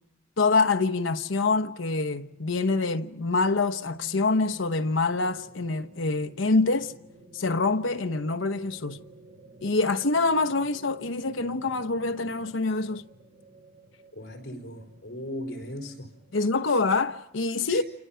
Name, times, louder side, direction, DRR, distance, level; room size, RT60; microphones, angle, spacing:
voice 1, 0.4-6.9 7.3-9.0 9.6-13.0 16.3-17.8, left 3 dB, 75° left, 1.0 m, -25 dB
sound 1, 1.8-17.2, right 1 dB, 85° right, 6.6 m, -53 dB
voice 2, 14.1-16.1 16.7-16.8 17.7-17.8, left 1 dB, 55° left, 4.5 m, -38 dB
28.5 x 27.5 x 5.7 m
head